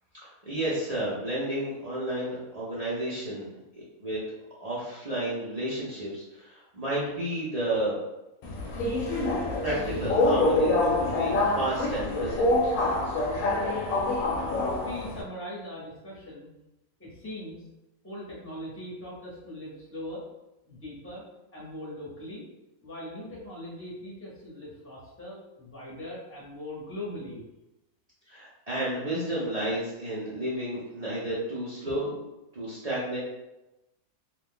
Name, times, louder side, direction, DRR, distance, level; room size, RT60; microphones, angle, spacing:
voice 1, 0.2-3.5 4.0-4.2 4.6-8.0 9.6-10.9 11.1-12.5 28.3-32.2 32.5-33.2, right 1 dB, 45° right, -8 dB, 0.5 m, -31 dB
Subway metro underground, 8.4-15.2, left 2 dB, 70° left, 0.9 m, -26 dB
voice 2, 14.6-16.5 17.0-17.6 18.0-20.3 20.7-21.2 21.5-22.4 22.8-27.4, left 1 dB, 10° left, -6 dB, 0.8 m, -40 dB
2.7 x 2.3 x 3.6 m, 0.95 s
omnidirectional pair, 1.5 m